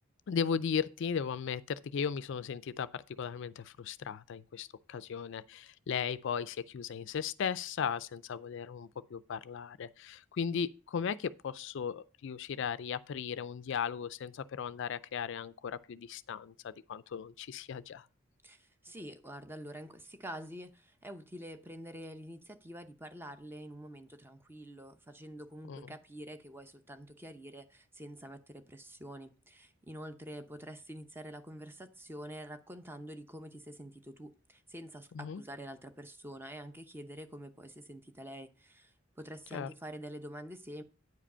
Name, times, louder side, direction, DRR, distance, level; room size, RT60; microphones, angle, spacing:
voice 1, 0.3-18.1 25.7-25.9 35.1-35.4 39.5-39.7, left 7 dB, 60° left, 0.4 m, -36 dB
voice 2, 18.4-40.8, equal, 10° right, 0.7 m, -47 dB
9.4 x 5.1 x 5.5 m
head